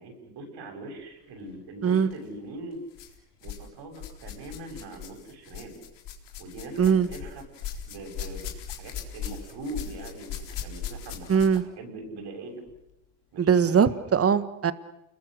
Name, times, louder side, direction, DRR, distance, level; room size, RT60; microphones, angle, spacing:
voice 1, 0.0-2.8 3.4-5.8 6.4-7.4 7.9-12.6 13.3-14.0, right 2 dB, 55° right, 3 dB, 7.6 m, -41 dB
sound 1, 2.0-2.2 2.9-3.7 3.9-11.7 12.7-12.8 13.6-13.7, left 8 dB, 60° left, 3.9 m, -39 dB
voice 2, 11.3-11.6 13.4-14.7, right 7 dB, 30° right, 14 dB, 1.5 m, -21 dB
29.5 x 22.0 x 6.6 m, 0.87 s
hypercardioid pair, 85°, 48 cm